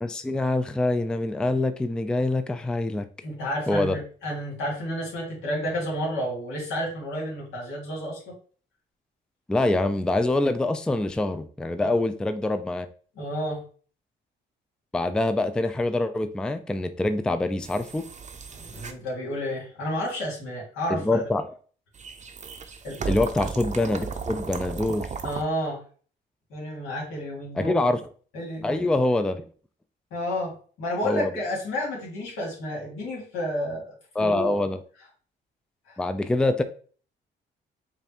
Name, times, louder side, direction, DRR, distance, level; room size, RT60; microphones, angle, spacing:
voice 1, 0.0-3.0 3.7-4.0 9.5-12.9 14.9-18.0 20.9-21.4 23.1-25.1 27.6-28.0 28.6-29.4 31.0-31.3 34.2-34.8 36.0-36.6, left 2 dB, 5° left, 10 dB, 0.3 m, -25 dB
voice 2, 3.2-8.3 11.8-11.9 13.2-13.6 18.5-21.2 22.8-23.1 25.2-25.8 26.5-27.8 28.3-28.9 30.1-33.9 34.2-34.5 35.9-36.0, equal, 85° left, -3 dB, 2.0 m, -31 dB
sound 1, 17.6-18.9 21.9-25.4, right 5 dB, 35° right, 0.6 m, -35 dB
5.1 x 2.6 x 2.9 m, 0.41 s
cardioid pair, 90°, 20 cm